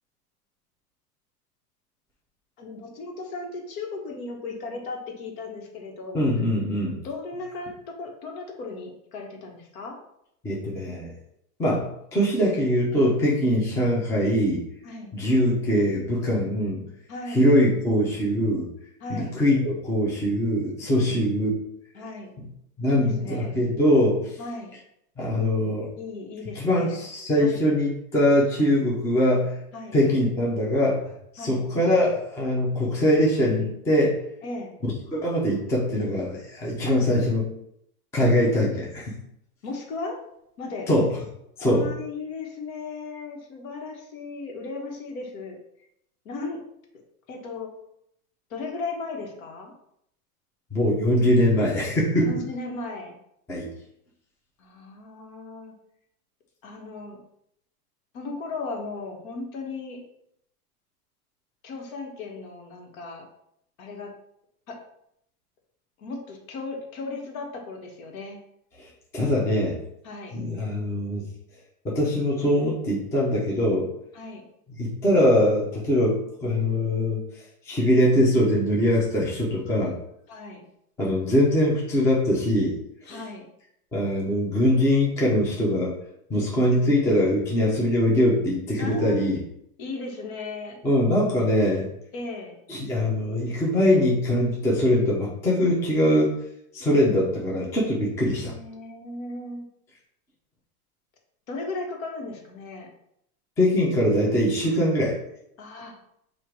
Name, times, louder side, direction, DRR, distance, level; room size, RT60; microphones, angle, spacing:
voice 1, 2.6-6.3 7.0-10.0 14.8-15.1 17.1-17.5 19.0-19.4 21.0-21.3 21.9-22.3 22.9-23.6 24.4-24.7 26.0-27.0 27.4-27.6 29.7-30.0 31.4-31.6 34.4-34.7 36.9-37.0 39.6-40.2 40.6-40.9 41.6-45.6 46.2-46.6 47.3-47.7 48.5-49.7 52.2-53.2 54.6-55.7 56.6-57.2 58.1-60.0 61.6-63.3 63.8-64.1 64.7-64.8 66.0-68.4 70.0-70.4 74.1-74.4 80.3-80.6 83.1-83.4 88.8-89.3 89.8-90.8 92.1-92.6 98.3-99.7 101.5-102.9 105.6-106.0, left 3 dB, 65° left, 1 dB, 1.4 m, -36 dB
voice 2, 6.1-7.0 10.4-11.1 11.6-14.6 15.1-16.8 17.3-18.7 19.1-21.5 22.8-24.3 25.2-25.9 26.6-29.6 29.9-31.0 31.3-34.2 35.1-37.4 38.1-39.1 40.9-41.1 41.6-41.9 50.7-52.3 53.5-53.7 68.8-68.9 69.1-69.8 70.3-71.2 71.8-73.9 74.8-77.2 77.7-79.9 81.0-82.8 83.1-83.2 83.9-85.9 86.3-89.4 90.8-91.9 92.7-96.3 96.7-98.5 103.6-105.2, left 1 dB, 5° left, -4 dB, 0.5 m, -22 dB
4.4 x 2.5 x 4.7 m, 0.75 s
supercardioid pair, 145°, 45 cm